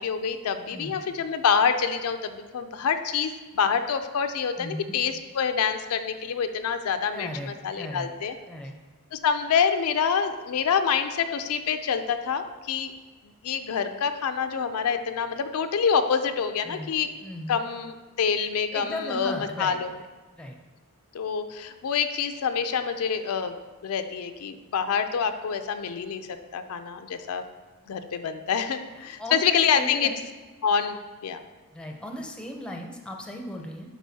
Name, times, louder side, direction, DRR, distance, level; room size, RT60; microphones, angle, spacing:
voice 1, 0.0-7.3 7.6-8.3 9.1-12.9 13.4-17.1 17.5-19.3 19.6-19.9 21.1-23.6 23.8-26.3 26.5-27.4 27.9-30.1 30.6-31.0 31.2-31.4, left 6 dB, 70° left, 8 dB, 0.4 m, -26 dB
voice 2, 0.7-1.0 4.6-4.9 7.1-8.1 8.5-8.7 16.6-16.9 17.2-17.6 18.7-19.8 20.3-20.6 28.9-30.2 31.7-34.0, left 1 dB, 5° left, 2 dB, 0.6 m, -37 dB
10.5 x 4.3 x 2.7 m, 1.3 s
head